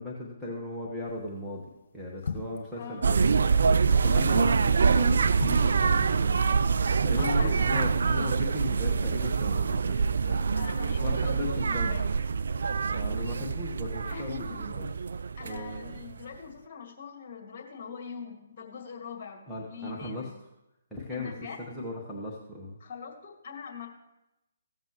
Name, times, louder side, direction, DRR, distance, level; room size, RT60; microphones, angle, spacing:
voice 1, 0.0-1.7 1.9-6.6 7.0-10.5 11.0-12.0 12.9-14.9 15.4-16.0 19.5-20.3 20.9-21.3 21.7-22.8, left 2 dB, ahead, -8 dB, 1.4 m, -37 dB
sound 1, 1.1-1.4 2.2-2.7 4.2-4.7 5.3-5.7 6.0-6.1, left 5 dB, 50° left, 1.2 m, -37 dB
voice 2, 2.8-3.1 7.2-8.4 10.5-12.1 14.0-14.6 15.4-20.3 21.1-21.6 22.8-23.9, left 6 dB, 35° left, 0 dB, 2.2 m, -42 dB
sound 2, 3.0-16.1, right 5 dB, 65° right, 0.3 m, -25 dB
15.5 x 7.4 x 3.1 m, 0.91 s
figure-of-eight pair, 135°, 0 cm